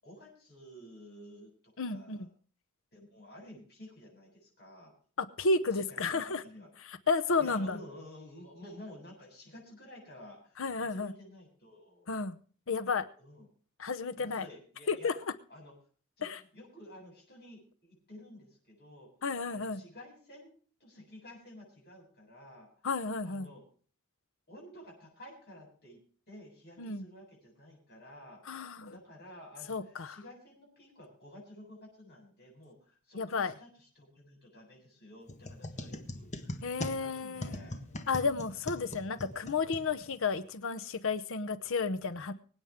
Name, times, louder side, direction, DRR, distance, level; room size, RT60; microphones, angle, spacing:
voice 1, 0.0-2.3 2.9-4.9 5.7-6.7 7.4-10.6 10.9-12.1 13.2-13.5 14.1-15.1 15.5-15.7 16.2-16.3 16.5-19.1 19.5-20.5 20.8-22.8 23.2-23.6 24.5-26.0 26.3-28.6 28.9-38.4, left 1 dB, 50° left, -1 dB, 7.8 m, -52 dB
voice 2, 1.8-2.3 5.2-6.4 6.8-7.8 10.6-11.1 12.1-12.4 12.7-13.1 13.8-14.5 14.9-15.1 16.2-16.4 19.2-19.8 22.8-23.5 26.8-27.1 28.5-29.0 29.7-30.2 33.2-33.5 36.6-37.6 38.1-42.3, left 4 dB, 65° left, 11 dB, 0.8 m, -32 dB
sound 1, 35.3-40.4, left 1 dB, 35° left, 1.5 m, -42 dB
24.5 x 9.0 x 3.6 m, 0.44 s
head